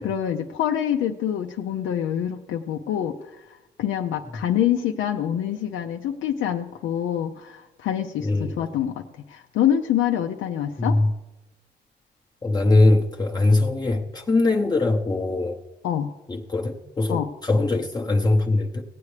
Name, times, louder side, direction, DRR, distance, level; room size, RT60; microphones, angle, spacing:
voice 1, 0.0-11.0 15.8-16.1 17.1-17.3, left 10 dB, 80° left, 3 dB, 0.5 m, -26 dB
voice 2, 8.2-8.6 10.8-11.1 12.4-15.6 16.3-18.8, left 2 dB, 20° left, 0 dB, 0.7 m, -21 dB
16.5 x 8.3 x 3.3 m, 1.0 s
cardioid pair, 90°, 20 cm